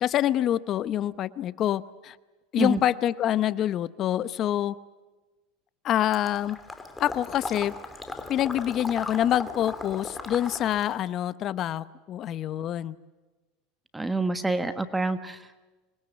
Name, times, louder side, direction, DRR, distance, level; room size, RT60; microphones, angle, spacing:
voice 1, 0.0-2.2 2.5-4.7 5.8-6.6 7.0-7.7 8.3-12.9, left 11 dB, 40° left, 17 dB, 0.9 m, -26 dB
Water / Liquid, 6.1-11.0, left 3 dB, 10° left, 2.6 m, -38 dB
voice 2, 13.9-15.6, right 2 dB, 10° right, 10 dB, 1.3 m, -27 dB
26.5 x 21.5 x 8.0 m, 1.2 s
supercardioid pair, 135°, 0 cm